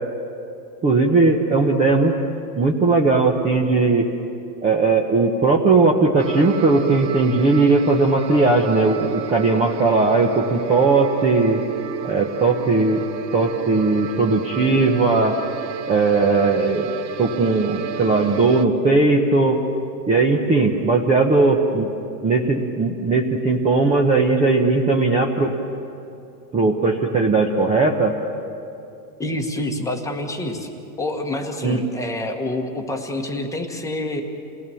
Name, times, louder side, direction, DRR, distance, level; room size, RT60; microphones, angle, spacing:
voice 1, 0.8-2.1 2.6-4.1 4.6-11.6 12.0-13.0 13.3-15.4 15.9-16.9 17.2-19.6 20.1-21.9 22.2-25.5 26.5-28.1 31.6-31.8, right 3 dB, 15° right, 0 dB, 0.9 m, -18 dB
sound 1, 6.2-18.7, right 10 dB, 85° right, 1.4 m, -32 dB
voice 2, 29.2-30.7 31.0-34.2, left 1 dB, 5° left, 3 dB, 1.3 m, -27 dB
28.5 x 18.5 x 7.0 m, 2.7 s
supercardioid pair, 160°, 50 cm